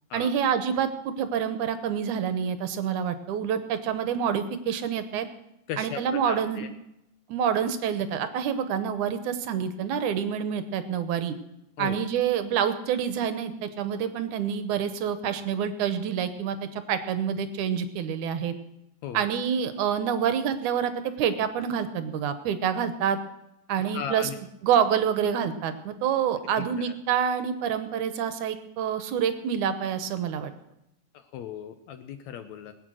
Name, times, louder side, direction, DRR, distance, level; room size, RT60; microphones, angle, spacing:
voice 1, 0.1-5.3 5.8-6.6 7.3-11.4 11.8-18.6 19.1-23.2 23.7-24.3 24.6-30.5, right 8 dB, 70° right, 10 dB, 2.2 m, -27 dB
voice 2, 5.7-6.7 11.8-12.0 19.0-19.3 23.8-24.4 26.5-26.9 31.1-32.7, left 8 dB, 75° left, 9 dB, 1.8 m, -37 dB
20.0 x 9.0 x 6.2 m, 0.88 s
omnidirectional pair, 3.8 m